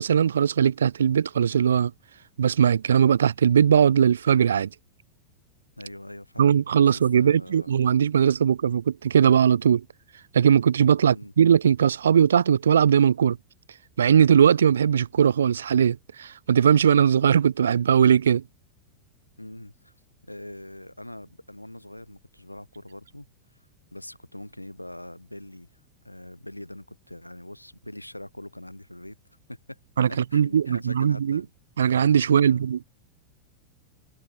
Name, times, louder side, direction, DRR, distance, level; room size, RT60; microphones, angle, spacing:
voice 1, 0.0-1.9 2.4-4.7 6.4-9.8 10.3-13.4 14.0-18.4 30.0-31.4 31.8-32.8, right 8 dB, 65° right, 0.3 m, -20 dB
voice 2, 5.8-6.5 6.9-7.7 11.0-11.3 19.4-19.9 20.3-23.6 23.9-25.8 26.0-29.2 29.5-29.8 30.1-31.5 32.4-32.6, left 1 dB, 85° left, 4.3 m, -42 dB
figure-of-eight pair, 90°, 0 cm